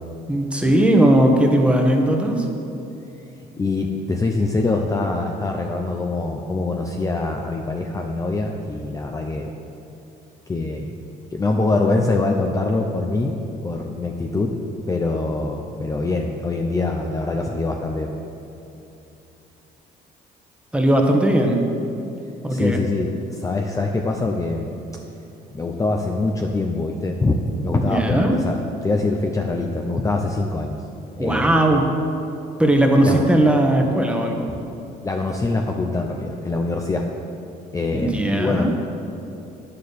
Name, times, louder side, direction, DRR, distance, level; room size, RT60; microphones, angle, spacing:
voice 1, 0.3-2.5 20.7-21.6 22.4-22.8 27.7-28.3 31.2-31.9 32.6-34.5 37.9-38.7, right 1 dB, 5° right, 2 dB, 1.2 m, -18 dB
voice 2, 3.6-9.5 10.5-10.9 11.3-13.3 13.6-14.6 14.9-18.1 22.5-24.7 25.5-30.8 31.2-31.9 33.1-33.2 35.0-37.1 37.7-38.8, left 3 dB, 20° left, 2 dB, 0.6 m, -24 dB
9.5 x 6.8 x 6.8 m, 2.8 s
cardioid pair, 110°, 17 cm